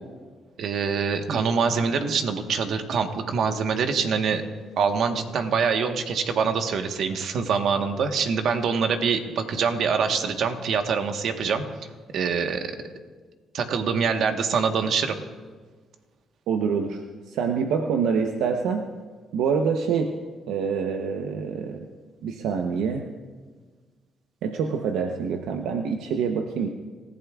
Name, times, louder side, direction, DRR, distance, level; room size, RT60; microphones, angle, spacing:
voice 1, 0.6-4.4 4.8-11.6 12.1-12.7 13.5-15.2, right 5 dB, 70° right, 6 dB, 1.3 m, -24 dB
voice 2, 16.5-17.0 17.3-18.9 19.3-20.1 20.5-21.9 22.2-23.0 24.4-26.7, right 6 dB, 90° right, 4 dB, 0.8 m, -26 dB
27.5 x 15.0 x 2.4 m, 1.4 s
cardioid pair, 90°, 0 cm